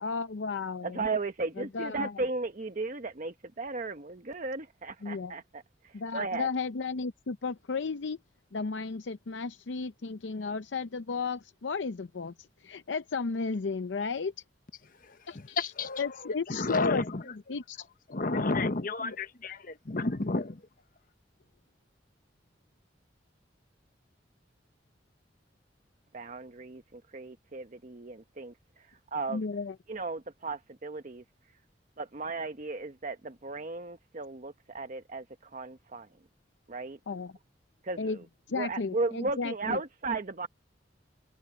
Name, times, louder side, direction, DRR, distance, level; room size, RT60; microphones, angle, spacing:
voice 1, 0.0-1.0 1.7-2.1 5.0-5.3 5.9-8.2 8.5-12.3 12.6-14.3 15.3-15.6 16.0-17.0 17.3-17.9 18.3-18.4 19.0-19.2 29.3-29.7 37.1-37.3 38.0-38.2 38.5-39.8, left 4 dB, 85° left, 0.6 m, -33 dB
voice 2, 0.8-6.5 26.1-29.4 29.9-31.6 32.0-36.2 36.7-37.0 37.8-40.5, right 3 dB, 45° right, 0.9 m, -36 dB
voice 3, 15.1-16.2 16.5-17.2 18.1-20.6, left 3 dB, 50° left, 1.1 m, -31 dB
head